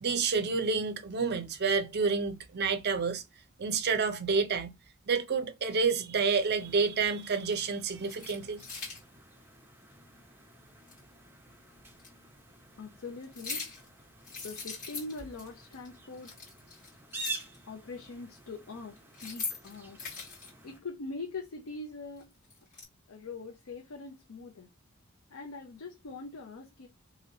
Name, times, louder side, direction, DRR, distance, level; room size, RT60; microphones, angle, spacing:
voice 1, 0.0-3.2 3.6-4.7 5.1-8.6, right 5 dB, 50° right, 0.5 m, -29 dB
sound 1, 6.4-6.5 7.2-7.6 8.0-9.0 10.9-11.0 12.0-12.1 13.2-13.9 14.2-15.5 15.7-15.9 16.1-17.6 19.0-20.5 22.2-22.8, left 4 dB, 40° left, 1.7 m, -41 dB
sound 2, 6.4-20.8, right 2 dB, 10° right, 0.7 m, -48 dB
voice 2, 12.8-13.7 14.3-16.4 17.7-20.0 20.6-22.3 23.1-24.7 25.3-26.9, left 3 dB, 75° left, 0.5 m, -43 dB
3.0 x 2.7 x 2.7 m
head